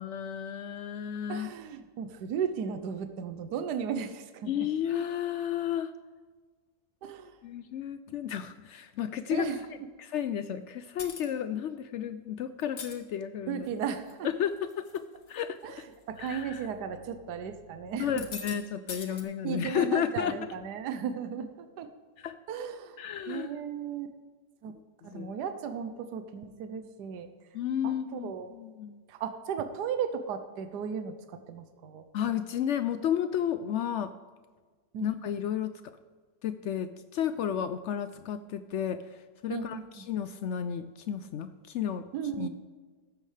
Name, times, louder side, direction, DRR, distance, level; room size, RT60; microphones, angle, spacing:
voice 1, 0.0-1.5 4.4-5.9 7.4-9.5 10.0-13.7 14.2-15.0 15.3-15.6 16.2-16.6 18.0-20.4 22.2-22.4 23.0-23.5 25.1-25.3 27.5-29.0 32.1-34.1 35.0-35.7 36.4-39.0 39.4-42.0 42.4-42.5, left 9 dB, 85° left, 11 dB, 0.6 m, -32 dB
voice 2, 1.3-4.7 7.0-7.3 9.3-9.6 13.5-14.3 15.6-18.3 19.1-19.2 19.4-21.9 22.5-23.0 23.3-24.1 24.6-24.7 25.0-27.3 27.8-28.5 29.1-32.0 34.9-35.1 39.5-40.0 42.1-42.5, right 7 dB, 80° right, 9 dB, 1.3 m, -35 dB
sound 1, 11.0-11.3 12.6-13.0 13.7-14.1 14.6-15.0 15.3-15.4 16.3-16.4 18.0-18.6 18.9-19.2, left 5 dB, 60° left, 1.7 m, -41 dB
14.5 x 12.0 x 3.3 m, 1.4 s
omnidirectional pair, 1.8 m